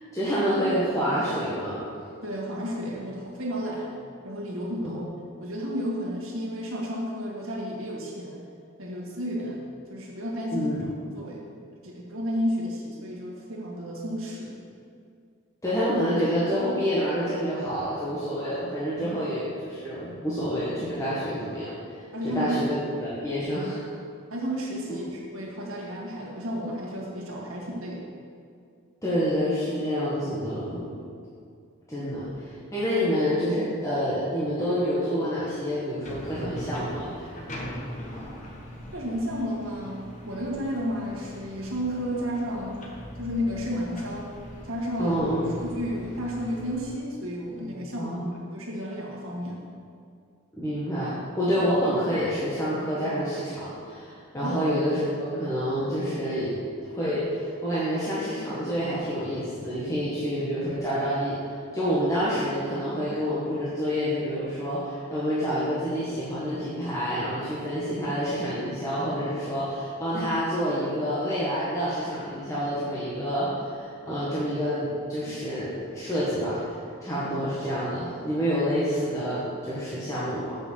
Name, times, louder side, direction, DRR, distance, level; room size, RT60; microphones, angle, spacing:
voice 1, 0.1-1.8 4.8-5.0 10.5-10.9 15.6-21.7 22.2-23.8 29.0-30.9 31.9-37.3 45.0-45.5 48.0-48.3 50.5-76.6 77.0-80.6, equal, 15° left, -10 dB, 1.4 m, -28 dB
voice 2, 2.2-3.9 4.2-5.0 5.4-8.4 8.8-11.4 11.8-14.6 19.0-19.2 22.1-22.6 24.3-28.1 38.9-42.8 43.2-44.3 44.6-45.2 45.6-48.2 48.5-49.6 54.4-54.6 75.3-75.4, equal, 75° right, -3 dB, 1.9 m, -32 dB
sound 1, 36.0-46.9, equal, 35° left, 1.4 m, -41 dB
6.9 x 6.3 x 7.6 m, 2.3 s
head